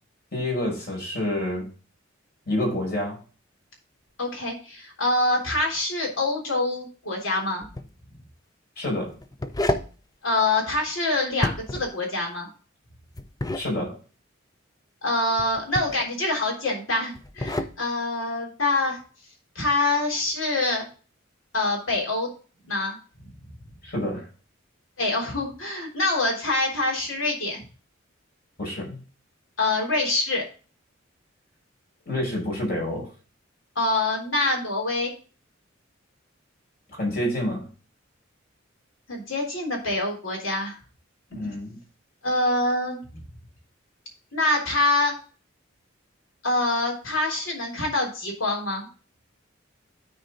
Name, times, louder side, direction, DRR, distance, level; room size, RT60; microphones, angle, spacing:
voice 1, 0.3-1.7 2.5-3.2 8.8-9.1 13.5-14.0 23.8-24.3 28.6-29.0 32.1-33.1 36.9-37.7 41.3-41.8, left 1 dB, 50° left, -1 dB, 5.2 m, -28 dB
voice 2, 4.2-7.7 10.2-12.5 15.0-19.0 19.6-20.9 21.5-22.3 22.6-23.0 25.0-27.6 29.6-30.4 33.8-35.1 39.1-40.8 41.3-41.5 42.2-43.2 44.3-45.1 46.4-48.9, left 2 dB, 75° left, 0 dB, 3.5 m, -25 dB
sound 1, 7.6-7.9 9.1-9.9 11.3-11.9 13.2-13.7 15.4-16.0 17.1-17.8, left 2 dB, 20° left, 0.6 m, -29 dB
12.5 x 4.6 x 3.9 m, 0.37 s
head